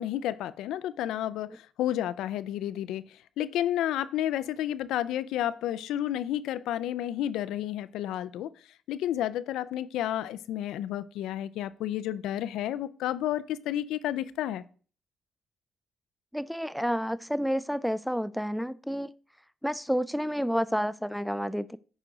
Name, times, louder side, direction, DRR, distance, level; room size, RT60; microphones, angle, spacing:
voice 1, 0.0-3.0 3.4-8.5 8.9-14.6, left 12 dB, 85° left, 0.3 m, -31 dB
voice 2, 16.3-19.1 19.6-21.8, equal, ahead, 0.3 m, -30 dB
9.0 x 4.9 x 3.8 m
cardioid pair, 90°, 0 cm